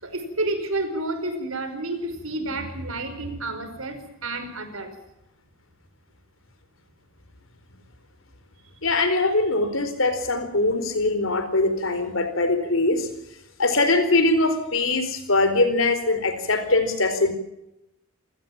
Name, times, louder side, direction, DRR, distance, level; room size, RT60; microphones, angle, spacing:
voice 1, 0.0-4.9, right 2 dB, 70° right, 9 dB, 5.2 m, -30 dB
voice 2, 8.8-13.1 13.6-17.3, left 2 dB, 60° left, 10 dB, 4.3 m, -22 dB
28.0 x 17.0 x 7.3 m, 0.86 s
head